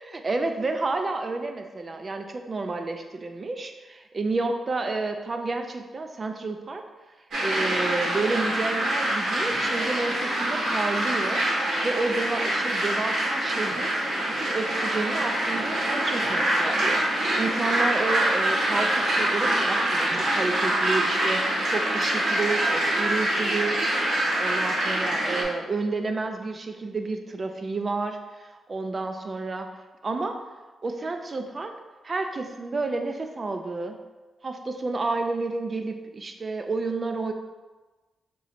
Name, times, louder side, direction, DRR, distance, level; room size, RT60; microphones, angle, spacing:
voice 1, 0.0-6.8 7.4-11.4 11.8-13.9 14.4-24.0 24.3-29.7 30.0-30.4 30.8-31.7 32.0-34.0 34.4-37.3, right 3 dB, 35° right, 5 dB, 0.3 m, -30 dB
sound 1, 7.3-25.4, right 1 dB, 75° right, 1.1 m, -25 dB
3.0 x 2.7 x 4.1 m, 1.2 s
cardioid pair, 95°, 0 cm